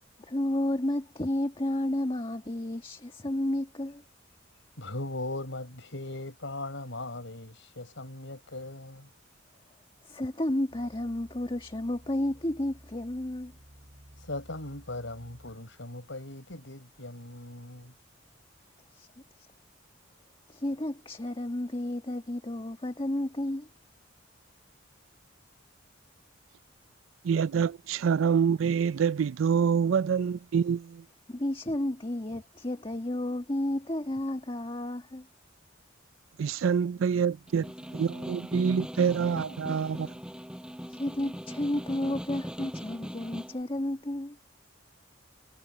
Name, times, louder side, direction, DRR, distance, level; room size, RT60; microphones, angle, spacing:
voice 1, 0.2-4.0 10.0-13.5 18.9-19.1 19.4-19.5 20.5-23.7 31.3-35.3 40.9-44.4, left 1 dB, 25° left, 1.5 m, -32 dB
voice 2, 4.8-9.1 14.2-17.9, left 2 dB, 70° left, 5.7 m, -39 dB
sound 1, 10.7-15.8 16.4-16.5, equal, 45° right, 5.3 m, -54 dB
voice 3, 27.2-31.0 36.4-40.1, right 6 dB, 85° right, 0.4 m, -26 dB
Snare drum, 37.5-43.6, equal, 5° right, 6.6 m, -40 dB
head